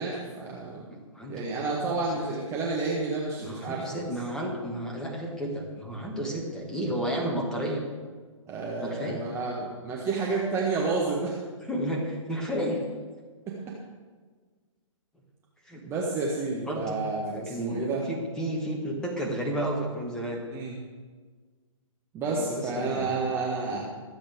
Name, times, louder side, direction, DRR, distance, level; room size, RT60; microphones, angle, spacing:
voice 1, 0.0-0.9 1.3-3.8 8.5-11.4 13.5-13.6 15.8-18.0 20.5-20.7 22.1-23.8, right 3 dB, 15° right, -4 dB, 1.4 m, -30 dB
voice 2, 0.9-1.9 3.4-7.8 8.8-9.2 11.7-12.8 15.7-15.8 16.7-17.0 17.3-20.4 22.3-23.4 23.7-23.8, right 1 dB, 5° left, -1 dB, 1.7 m, -32 dB
23.5 x 7.9 x 3.6 m, 1.5 s
figure-of-eight pair, 130°, 17 cm